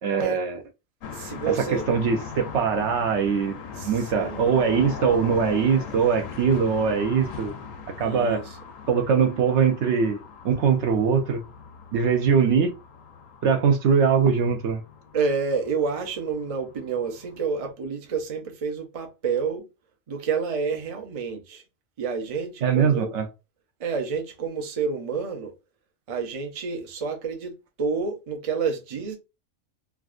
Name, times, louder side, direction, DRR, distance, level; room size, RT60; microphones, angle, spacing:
voice 1, 0.0-0.6 1.9-3.5 3.8-7.5 8.0-8.4 8.9-10.2 10.4-11.4 11.9-12.7 13.4-14.8 22.6-23.3, right 6 dB, 70° right, 0.8 m, -22 dB
sound 1, 1.0-17.7, left 5 dB, 85° left, 1.1 m, -40 dB
voice 2, 1.1-1.8 3.7-4.6 8.0-8.6 15.1-19.7 20.1-21.6 22.0-23.1 23.8-25.5 26.1-29.2, right 5 dB, 40° right, 0.5 m, -29 dB
3.4 x 2.4 x 2.4 m
omnidirectional pair, 1.3 m